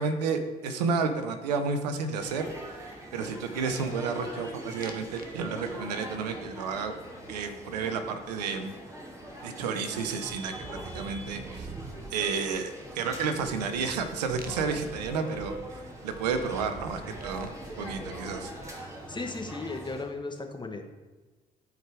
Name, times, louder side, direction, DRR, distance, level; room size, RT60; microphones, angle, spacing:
voice 1, 0.0-2.5 3.1-6.9 7.3-8.7 9.4-11.7 12.1-17.5 17.8-18.5, right 5 dB, 90° right, 8 dB, 0.7 m, -31 dB
sound 1, 2.2-20.0, right 1 dB, 15° right, 2.6 m, -43 dB
sound 2, 4.8-5.3 5.6-6.1 8.5-8.6 8.9-18.9, right 4 dB, 45° right, 1.2 m, -47 dB
voice 2, 19.1-20.8, left 3 dB, 20° left, 4 dB, 1.4 m, -36 dB
13.0 x 4.9 x 4.8 m, 1.2 s
hypercardioid pair, 50°, 20 cm